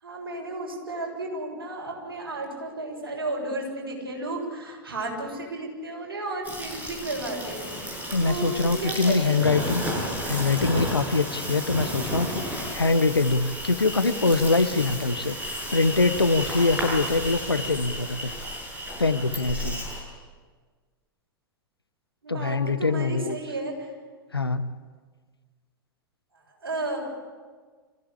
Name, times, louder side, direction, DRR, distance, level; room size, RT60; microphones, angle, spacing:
voice 1, 0.0-9.9 22.2-23.9 26.3-27.1, right 2 dB, 75° right, -1 dB, 7.3 m, -33 dB
Insect, 6.4-20.0, equal, 15° right, 7.5 m, -33 dB
voice 2, 8.1-9.8 10.3-18.3 19.0-19.8 22.3-23.4 24.3-24.7, left 3 dB, 85° left, 12 dB, 1.0 m, -24 dB
25.5 x 16.0 x 8.7 m, 1.5 s
figure-of-eight pair, 95°, 12 cm